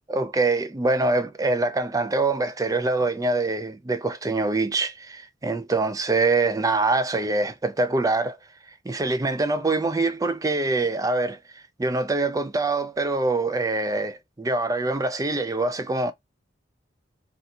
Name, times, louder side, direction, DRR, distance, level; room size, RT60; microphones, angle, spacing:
voice 1, 0.1-8.4 8.9-11.4 11.8-16.1, right 3 dB, 20° right, 0.4 m, -24 dB
2.8 x 2.4 x 4.0 m
head